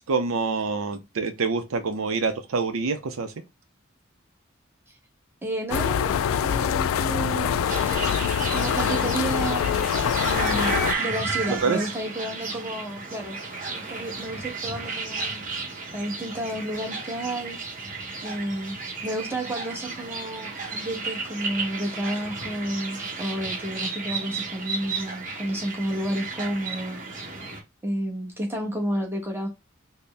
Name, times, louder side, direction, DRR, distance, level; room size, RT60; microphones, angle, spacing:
voice 1, 0.0-3.3 11.5-11.8, right 4 dB, 80° right, 0.6 m, -26 dB
voice 2, 5.4-7.9 8.5-9.8 10.2-13.4 13.7-15.4 15.9-17.6 18.2-27.0 27.8-29.5, right 1 dB, 10° right, 1.1 m, -31 dB
sound 1, 5.7-11.0, left 8 dB, 80° left, 0.3 m, -24 dB
sound 2, 7.7-27.6, right 4 dB, 40° right, 1.0 m, -33 dB
4.1 x 2.1 x 3.4 m
head